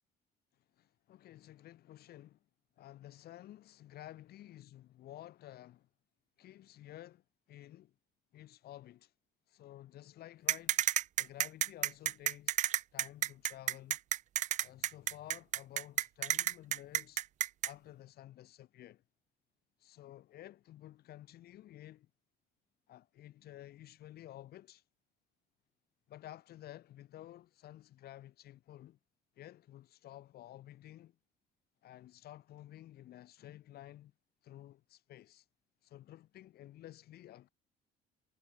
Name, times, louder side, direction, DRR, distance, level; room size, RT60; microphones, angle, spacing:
voice 1, 0.8-2.4 2.8-4.6 4.9-5.9 6.4-7.2 7.5-7.9 8.3-9.1 9.5-10.8 11.2-12.6 12.9-14.0 14.6-17.2 17.6-19.0 19.8-22.1 22.9-24.8 26.1-29.0 29.4-31.2 31.8-34.1 34.4-35.4 35.8-37.5, left 13 dB, 65° left, 2.7 m, -52 dB
sound 1, 10.5-17.7, right 12 dB, 45° right, 0.4 m, -31 dB
cardioid pair, 110°, 17 cm